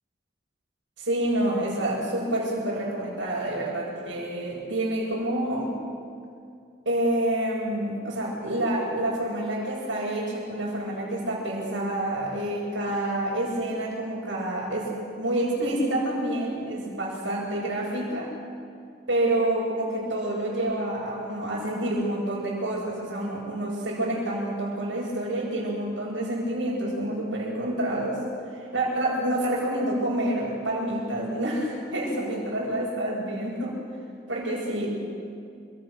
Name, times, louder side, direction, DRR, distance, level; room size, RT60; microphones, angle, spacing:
voice 1, 1.0-5.8 6.9-18.3 19.1-28.2 28.5-33.8 34.3-34.9, right 1 dB, 85° right, -8 dB, 7.0 m, -28 dB
28.5 x 25.0 x 6.4 m, 2.4 s
head